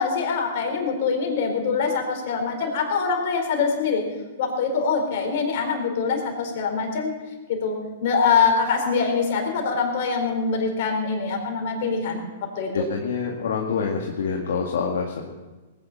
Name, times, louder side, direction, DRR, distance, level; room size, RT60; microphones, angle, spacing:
voice 1, 0.0-4.0 4.4-7.1 7.5-12.8, left 5 dB, 55° left, 2 dB, 4.1 m, -24 dB
voice 2, 12.7-15.2, left 5 dB, 70° left, -1 dB, 2.0 m, -26 dB
19.0 x 10.0 x 5.9 m, 1.2 s
hypercardioid pair, 120°, 0 cm